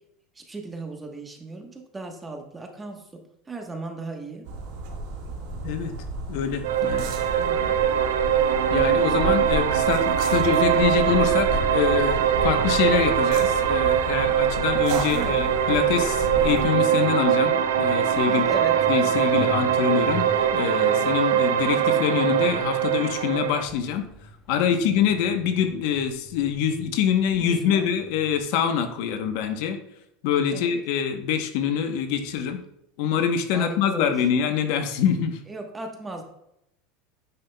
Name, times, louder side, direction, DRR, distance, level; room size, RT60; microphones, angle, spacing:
voice 1, 0.3-4.5 7.4-7.8 15.1-15.4 18.3-18.8 24.7-25.1 27.4-27.9 30.5-30.7 33.5-34.1 35.5-36.2, right 2 dB, 15° right, 3 dB, 1.1 m, -36 dB
sound 1, 4.5-16.6, right 2 dB, 70° right, 1.6 m, -33 dB
voice 2, 6.3-7.4 8.7-18.5 18.9-24.1 24.5-29.8 30.2-32.6 33.0-35.4, left 8 dB, 65° left, 7 dB, 0.9 m, -25 dB
sound 2, 6.6-23.6, right 9 dB, 90° right, 0.6 m, -22 dB
Truck, 16.1-28.4, equal, 25° left, 1.0 m, -43 dB
9.5 x 5.4 x 2.2 m, 0.78 s
supercardioid pair, 120°, 0 cm